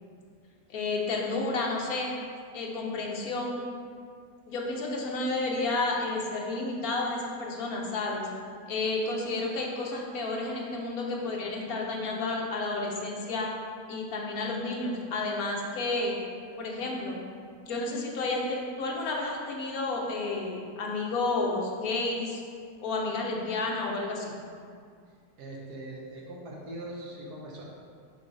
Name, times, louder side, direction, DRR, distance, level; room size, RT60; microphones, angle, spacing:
voice 1, 0.7-2.2 2.5-3.6 4.5-8.3 8.7-13.5 13.9-16.2 16.6-17.2 17.7-22.4 22.8-24.4, left 2 dB, 70° left, -1 dB, 1.4 m, -31 dB
voice 2, 25.4-27.6, right 1 dB, 80° right, -2 dB, 1.6 m, -41 dB
6.6 x 3.4 x 5.4 m, 2.2 s
omnidirectional pair, 1.7 m